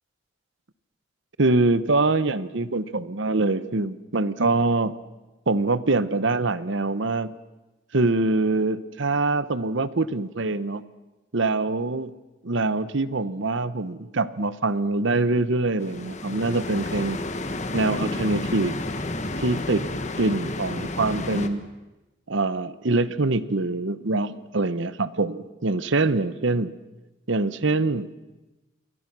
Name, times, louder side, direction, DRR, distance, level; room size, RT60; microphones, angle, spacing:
voice 1, 1.4-4.9 5.5-7.3 7.9-10.8 11.3-12.1 12.4-17.2 17.7-18.8 19.4-19.8 20.2-21.6 22.3-26.7 27.3-28.1, right 3 dB, 60° right, 15 dB, 0.9 m, -24 dB
sound 1, 15.8-21.5, left 2 dB, 35° left, 1.5 m, -31 dB
29.0 x 23.5 x 6.1 m, 1.1 s
head